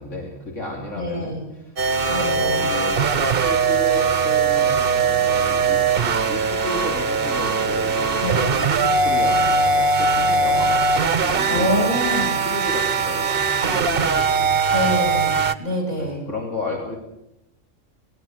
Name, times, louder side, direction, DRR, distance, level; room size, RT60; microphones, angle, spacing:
voice 1, 0.0-1.8 2.2-8.2 8.7-11.9 12.4-14.9 16.0-17.0, left 2 dB, 70° left, -1 dB, 3.4 m, -33 dB
voice 2, 1.0-1.5 2.1-2.7 8.2-8.6 11.5-12.4 14.7-16.2, left 1 dB, 35° left, 1 dB, 7.7 m, -25 dB
sound 1, 1.8-15.5, right 4 dB, 50° right, 1.1 m, -20 dB
19.5 x 17.0 x 8.0 m, 0.90 s
omnidirectional pair, 1.4 m